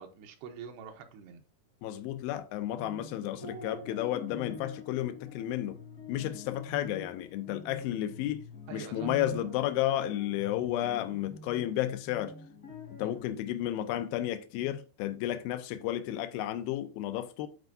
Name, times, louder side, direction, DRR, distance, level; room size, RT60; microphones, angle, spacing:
voice 1, 0.0-1.4 8.7-9.1 10.6-10.7 13.0-13.1, right 6 dB, 80° right, 2.8 m, -46 dB
voice 2, 1.8-5.8 6.1-8.4 8.7-12.3 13.0-17.5, left 13 dB, 85° left, 2.2 m, -32 dB
sound 1, 2.7-13.3, left 2 dB, 50° left, 1.0 m, -46 dB
11.5 x 4.4 x 2.6 m
omnidirectional pair, 4.9 m